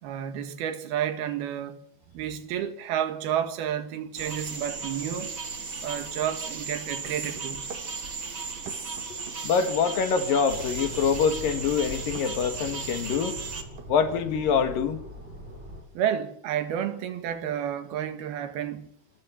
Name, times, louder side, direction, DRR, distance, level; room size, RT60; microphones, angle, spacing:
voice 1, 0.0-1.8 2.1-5.4 5.8-7.7 16.0-18.9, right 10 dB, 80° right, 3.6 m, -31 dB
sound 1, 4.2-13.6, right 4 dB, 30° right, 1.6 m, -36 dB
sound 2, 7.0-7.9 8.7-9.4 10.6-11.1 12.1-12.3 13.5-14.3, right 7 dB, 60° right, 3.3 m, -44 dB
voice 2, 9.4-13.4 13.9-15.0, left 6 dB, 65° left, 3.5 m, -25 dB
sound 3, 10.5-15.8, equal, 15° right, 8.3 m, -42 dB
27.0 x 14.5 x 7.5 m
omnidirectional pair, 4.4 m